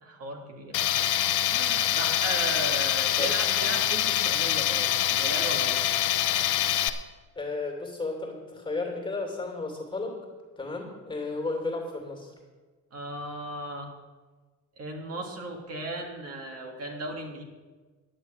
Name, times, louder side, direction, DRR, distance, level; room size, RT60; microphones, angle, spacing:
voice 1, 0.0-6.0 12.9-13.9 14.8-17.4, right 2 dB, 55° right, 2 dB, 1.9 m, -36 dB
Tools, 0.7-6.9, left 12 dB, 85° left, 0.7 m, -25 dB
voice 2, 7.3-10.2 10.6-12.3, left 3 dB, 15° left, 1 dB, 2.7 m, -33 dB
11.0 x 6.9 x 8.8 m, 1.3 s
cardioid pair, 145°, 30 cm